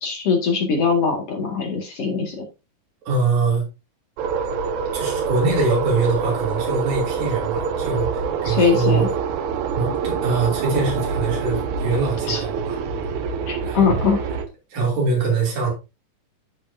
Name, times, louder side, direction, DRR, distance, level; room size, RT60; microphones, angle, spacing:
voice 1, 0.0-2.5 8.4-9.1 12.3-12.4 13.5-14.2, left 5 dB, 50° left, 2.9 m, -21 dB
voice 2, 3.1-3.6 4.9-9.1 9.7-12.8 13.6-14.0 14.3-14.4 14.7-15.7, right 3 dB, 90° right, 4.8 m, -23 dB
sound 1, 4.2-14.5, right 6 dB, 70° right, 2.1 m, -26 dB
14.5 x 5.1 x 2.7 m
omnidirectional pair, 3.9 m